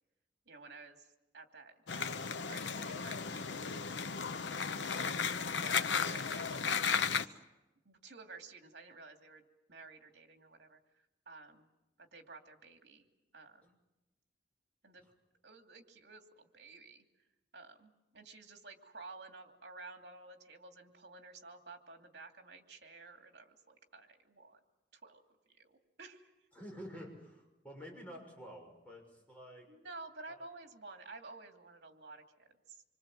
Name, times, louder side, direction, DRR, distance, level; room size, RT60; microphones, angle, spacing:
voice 1, 0.5-5.0 5.6-7.4 7.8-10.8 11.3-11.7 12.0-13.1 13.3-13.8 14.8-15.1 15.4-17.0 17.5-24.6 24.9-26.3 29.7-32.8, right 3 dB, 65° right, 4 dB, 2.8 m, -53 dB
sound 1, 1.9-7.2, left 6 dB, 80° left, 0.9 m, -35 dB
voice 2, 26.5-29.6 30.3-30.4, equal, 10° left, -1 dB, 6.5 m, -50 dB
26.0 x 25.0 x 7.8 m, 1.0 s
head